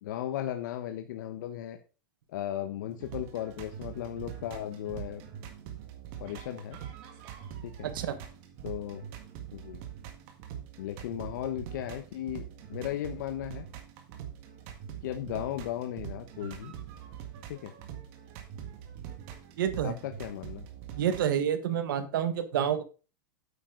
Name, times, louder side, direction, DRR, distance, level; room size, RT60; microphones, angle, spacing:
voice 1, 0.0-1.8 2.3-5.2 6.2-6.8 7.6-7.9 8.6-9.0 9.5-9.8 10.8-13.7 15.0-16.7 17.5-17.7 19.8-20.7, left 11 dB, 65° left, 7 dB, 1.1 m, -36 dB
sound 1, 2.8-21.3, right 9 dB, 40° right, 1.8 m, -44 dB
voice 2, 7.8-8.2 19.6-19.9 21.0-22.8, right 9 dB, 80° right, 10 dB, 1.4 m, -28 dB
9.4 x 8.4 x 3.9 m, 0.34 s
supercardioid pair, 170°, 11 cm